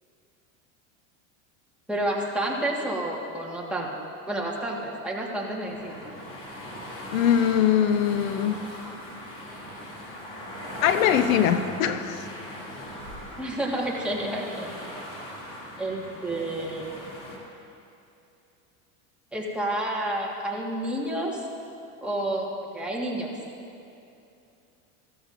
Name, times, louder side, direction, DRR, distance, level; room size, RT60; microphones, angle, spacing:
voice 1, 1.9-3.9 4.3-6.0 13.4-15.0 15.8-16.9 19.3-21.4 22.0-23.3, right 1 dB, 5° right, -4 dB, 1.6 m, -30 dB
sound 1, 5.6-17.4, equal, 50° left, 2.8 m, -39 dB
voice 2, 7.1-8.6 10.8-12.3, left 9 dB, 90° left, 10 dB, 0.7 m, -22 dB
15.0 x 13.5 x 2.6 m, 2.7 s
supercardioid pair, 130°, 39 cm